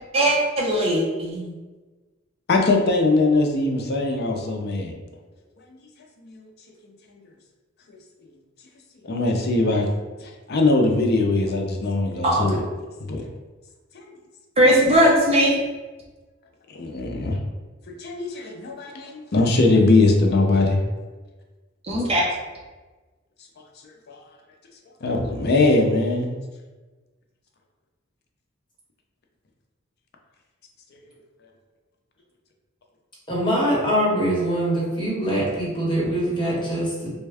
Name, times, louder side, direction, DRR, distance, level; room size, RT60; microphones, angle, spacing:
voice 1, 0.1-1.5 12.2-12.5 14.6-15.5 21.9-22.2, right 1 dB, 30° right, -3 dB, 0.6 m, -19 dB
voice 2, 2.5-4.9 6.2-6.4 9.0-9.9 10.2-12.6 13.0-13.3 13.9-14.1 16.7-17.4 17.9-20.8 24.1-24.2 25.0-26.3, left 2 dB, 50° left, 2 dB, 0.5 m, -21 dB
voice 3, 33.3-37.1, right 1 dB, 25° left, -6 dB, 1.1 m, -23 dB
3.4 x 2.2 x 3.3 m, 1.3 s
head